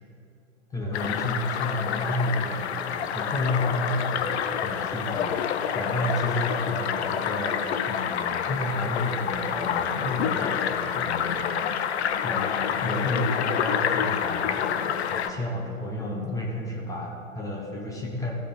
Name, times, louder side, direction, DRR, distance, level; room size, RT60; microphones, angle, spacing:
voice 1, 0.7-5.4 5.7-7.6 7.9-11.6 12.2-18.4, left 1 dB, 10° left, -2 dB, 0.6 m, -31 dB
sound 1, 0.9-15.3, left 8 dB, 55° left, 0.6 m, -28 dB
15.0 x 5.0 x 4.3 m, 2.7 s
figure-of-eight pair, 110°, 40 cm